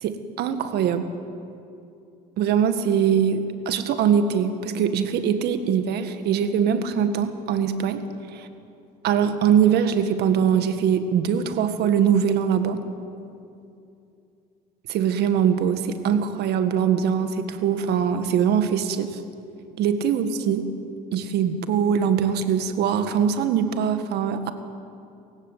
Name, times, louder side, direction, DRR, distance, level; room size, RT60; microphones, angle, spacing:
voice 1, 0.0-1.1 2.4-8.0 9.0-12.8 14.9-19.2 19.8-20.7 21.1-24.5, right 8 dB, 75° right, 9 dB, 1.8 m, -22 dB
27.0 x 16.0 x 8.2 m, 2.6 s
cardioid pair, 110°, 17 cm